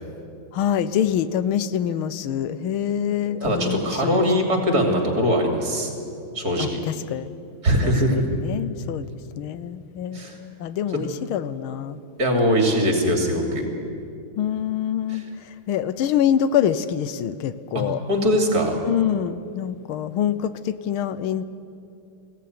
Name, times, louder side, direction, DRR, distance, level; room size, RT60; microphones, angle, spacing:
voice 1, 0.5-4.2 6.6-7.3 7.8-9.1 9.4-12.0 14.4-18.0 18.9-21.4, left 9 dB, 90° left, 14 dB, 1.7 m, -25 dB
voice 2, 3.4-5.9 6.3-6.8 7.6-8.2 10.1-10.4 10.9-11.0 12.2-13.7 15.1-15.2 17.7-18.8, equal, 45° right, 2 dB, 3.4 m, -21 dB
21.0 x 16.5 x 9.5 m, 2.6 s
omnidirectional pair, 2.2 m